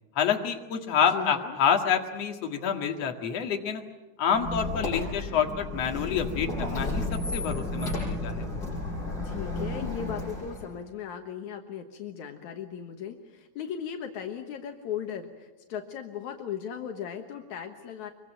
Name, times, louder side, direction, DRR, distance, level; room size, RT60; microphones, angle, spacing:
voice 1, 0.2-3.8 4.2-7.0 7.3-8.5, left 7 dB, 60° left, 4 dB, 2.9 m, -27 dB
voice 2, 1.1-1.6 9.2-18.1, left 8 dB, 75° left, 4 dB, 2.7 m, -37 dB
Squeak, 4.3-10.7, left 2 dB, 30° left, 8.4 m, -32 dB
24.5 x 23.5 x 9.0 m, 1.1 s
omnidirectional pair, 3.4 m